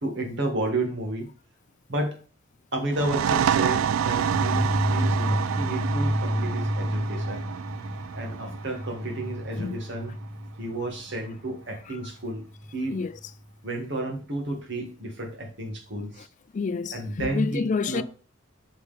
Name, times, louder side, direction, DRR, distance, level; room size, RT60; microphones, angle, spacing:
voice 1, 0.0-1.3 1.9-2.2 2.7-7.4 8.1-10.2 10.6-12.4 12.7-13.0 13.6-16.3 16.9-18.0, right 2 dB, 60° right, 1.9 m, -31 dB
sound 1, 2.9-10.3, right 9 dB, 80° right, 0.3 m, -28 dB
sound 2, 3.4-13.2, equal, 10° left, 1.0 m, -30 dB
voice 2, 16.5-18.0, left 4 dB, 40° left, 0.3 m, -28 dB
6.5 x 5.6 x 3.4 m
head